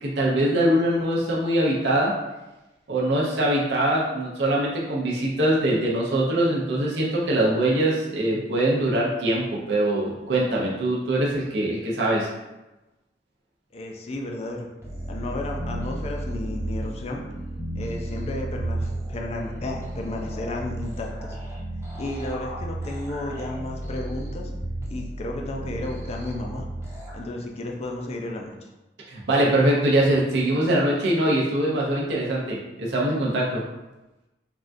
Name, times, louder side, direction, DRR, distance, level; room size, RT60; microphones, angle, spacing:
voice 1, 0.0-2.1 2.9-12.3 29.1-33.6, right 1 dB, 70° right, -4 dB, 0.6 m, -23 dB
voice 2, 13.7-14.7 15.1-17.2 17.7-21.4 21.9-24.5 24.9-26.7 27.1-28.7, left 2 dB, 35° left, 1 dB, 0.4 m, -33 dB
sound 1, 14.8-27.3, right 1 dB, 15° right, 0.7 m, -33 dB
3.4 x 2.3 x 2.5 m, 1.0 s
head